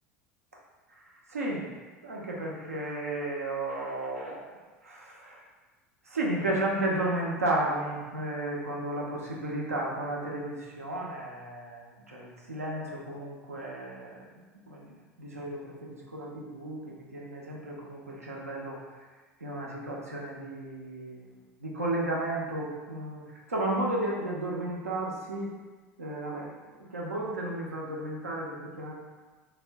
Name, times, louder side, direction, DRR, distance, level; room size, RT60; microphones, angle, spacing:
voice 1, 1.3-1.7 2.0-4.5 4.8-5.4 6.0-14.9 15.2-19.1 19.4-21.3 21.6-25.6 26.0-28.9, right 1 dB, 90° right, -2 dB, 0.5 m, -33 dB
2.4 x 2.1 x 3.3 m, 1.3 s
figure-of-eight pair, 75°, 8 cm